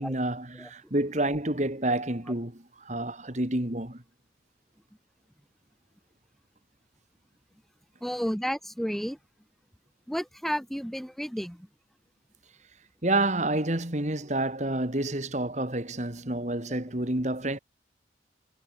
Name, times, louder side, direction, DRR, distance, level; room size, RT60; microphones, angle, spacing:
voice 1, 0.0-4.0 13.0-17.6, right 1 dB, 40° right, 2.7 m, -29 dB
voice 2, 8.0-9.2 10.1-11.7, equal, ahead, 3.1 m, -31 dB
head